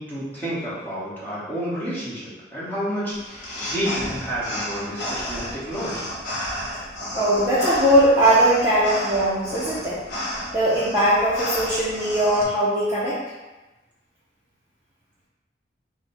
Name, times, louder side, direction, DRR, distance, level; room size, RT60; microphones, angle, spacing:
voice 1, 0.0-6.1, equal, 10° left, -10 dB, 1.1 m, -30 dB
sound 1, 3.1-12.4, left 1 dB, 85° left, 0.9 m, -32 dB
voice 2, 7.1-10.0 10.5-13.2, right 1 dB, 15° right, -10 dB, 0.5 m, -20 dB
3.5 x 2.1 x 4.2 m, 1.1 s
head